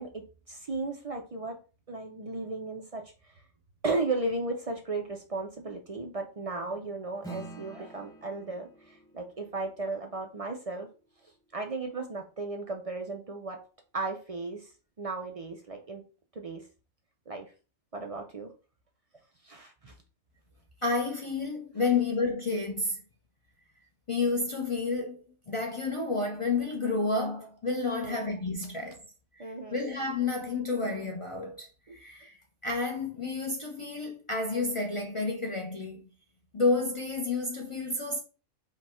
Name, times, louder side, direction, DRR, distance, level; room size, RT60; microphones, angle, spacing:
voice 1, 0.0-1.6 1.9-3.0 3.8-8.7 9.1-10.9 11.5-13.6 13.9-14.6 15.0-16.0 16.4-16.6 17.3-17.5 17.9-18.5 19.4-19.9 27.9-28.3 29.4-29.8 31.9-32.0, right 3 dB, 55° right, 0.3 m, -35 dB
Acoustic guitar / Strum, 7.2-12.0, right 2 dB, 5° left, 0.7 m, -49 dB
voice 2, 20.8-23.0 24.1-29.0 29.4-29.5 29.7-32.4 32.6-36.0 36.5-38.2, left 3 dB, 45° left, 0.4 m, -30 dB
5.0 x 2.2 x 4.2 m
omnidirectional pair, 1.4 m